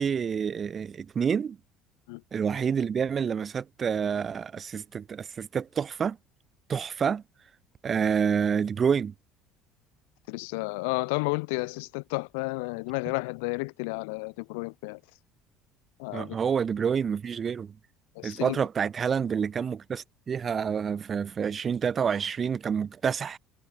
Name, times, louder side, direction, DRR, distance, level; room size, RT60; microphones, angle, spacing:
voice 1, 0.0-1.6 2.3-6.2 6.7-7.2 7.8-9.1 16.1-17.8 18.2-23.4, right 7 dB, 35° right, 2.5 m, -28 dB
voice 2, 10.3-15.0 16.0-16.3 18.2-18.6, left 30 dB, 65° left, 7.2 m, -32 dB
figure-of-eight pair, 60°, 0 cm